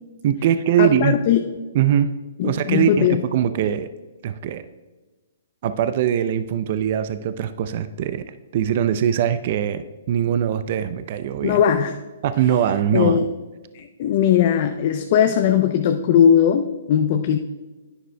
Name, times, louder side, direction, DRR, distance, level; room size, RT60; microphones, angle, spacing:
voice 1, 0.2-1.2 1.7-2.1 2.4-3.9 4.2-4.6 5.6-8.2 8.5-11.6 12.2-13.2, right 9 dB, 50° right, 12 dB, 0.5 m, -21 dB
voice 2, 0.8-1.4 2.4-3.2 11.4-12.0 12.9-13.3 13.7-17.4, left 9 dB, 50° left, 6 dB, 0.6 m, -19 dB
10.5 x 10.0 x 2.2 m, 1.2 s
hypercardioid pair, 130°, 0 cm